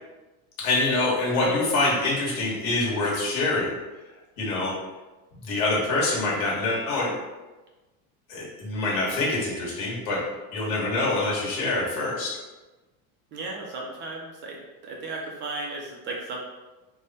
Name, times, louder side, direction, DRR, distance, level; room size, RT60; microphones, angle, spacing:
voice 1, 0.6-3.7 4.4-4.7 5.4-7.1 8.3-10.2 10.5-12.3, left 2 dB, 90° left, -5 dB, 1.5 m, -25 dB
voice 2, 1.4-1.9 13.3-16.4, right 2 dB, 25° right, -1 dB, 0.5 m, -35 dB
3.3 x 2.2 x 4.0 m, 1.1 s
supercardioid pair, 155°, 42 cm